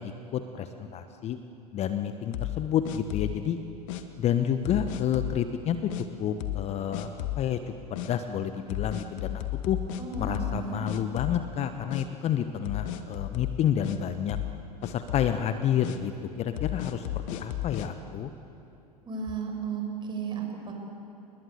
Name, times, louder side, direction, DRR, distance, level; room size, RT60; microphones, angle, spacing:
voice 1, 0.0-1.4 1.7-3.6 4.2-5.9 6.2-7.6 7.9-9.8 10.2-14.4 14.8-16.1 16.4-18.3, left 9 dB, 30° left, 9 dB, 1.1 m, -29 dB
sound 1, 2.3-3.4 3.9-4.0 4.7-5.4 5.9-6.0 6.4-6.7 6.9-7.5 8.0-8.1 8.7-10.6 10.9-11.6 11.9-12.1 12.7-14.0 14.3-14.6 14.8-15.3 15.8-16.0 16.6-17.9, left 14 dB, 50° left, 1.7 m, -33 dB
voice 2, 10.0-10.8 19.0-20.7, right 6 dB, 20° right, 2 dB, 6.6 m, -34 dB
30.0 x 21.0 x 8.1 m, 2.9 s
figure-of-eight pair, 85°, 21 cm